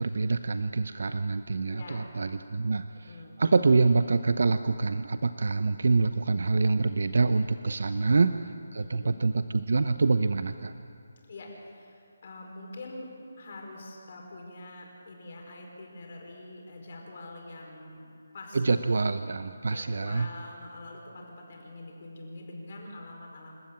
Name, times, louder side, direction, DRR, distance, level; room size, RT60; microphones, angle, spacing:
voice 1, 0.0-8.3 8.7-10.7 18.5-20.3, right 3 dB, 65° right, 10 dB, 0.7 m, -26 dB
voice 2, 1.7-2.2 2.9-3.4 7.8-8.2 8.7-9.1 11.3-18.1 18.3-18.6 19.6-23.5, left 2 dB, 40° left, 1 dB, 4.8 m, -45 dB
27.5 x 13.0 x 8.9 m, 2.6 s
hypercardioid pair, 170°, 0 cm